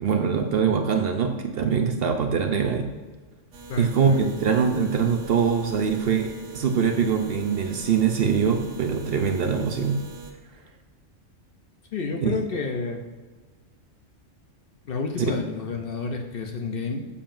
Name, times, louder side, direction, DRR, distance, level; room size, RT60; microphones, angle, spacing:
voice 1, 0.0-2.9 3.8-10.0 12.2-12.3 15.2-15.3, right 6 dB, 60° right, 4 dB, 0.7 m, -23 dB
sound 1, 3.5-10.3, right 5 dB, 85° right, 1.2 m, -43 dB
voice 2, 3.7-4.3 11.9-13.0 14.9-17.1, left 4 dB, 55° left, 3 dB, 0.7 m, -30 dB
7.2 x 6.9 x 2.5 m, 1.3 s
omnidirectional pair, 1.3 m